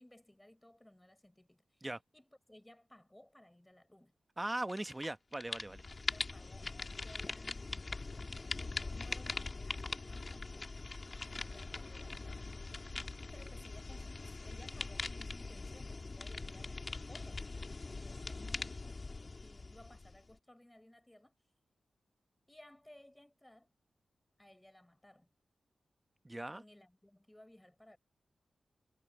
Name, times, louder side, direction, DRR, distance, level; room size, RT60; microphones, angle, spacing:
voice 1, 0.0-1.9 2.1-4.1 6.0-7.7 8.1-10.8 11.4-12.4 13.3-18.7 19.2-21.3 22.5-23.7 24.4-25.3 26.5-28.0, left 1 dB, 10° left, 6.6 m, -60 dB
voice 2, 4.4-5.8 26.2-26.6, right 1 dB, 20° right, 1.1 m, -39 dB
sound 1, 4.7-5.1 5.3-20.3, left 3 dB, 40° left, 2.2 m, -42 dB
wide cardioid pair, 80°, 0 cm